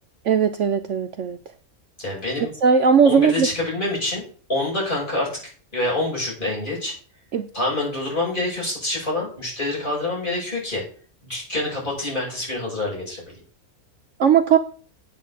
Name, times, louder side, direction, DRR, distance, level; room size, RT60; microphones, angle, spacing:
voice 1, 0.2-1.4 2.6-3.5 7.3-7.5 14.2-14.6, right 6 dB, 60° right, 8 dB, 1.0 m, -18 dB
voice 2, 2.0-2.5 3.1-4.2 4.5-5.3 5.7-6.9 7.5-10.8 11.2-13.4, left 2 dB, 35° left, -4 dB, 7.0 m, -26 dB
8.6 x 6.9 x 7.5 m, 0.43 s
omnidirectional pair, 1.5 m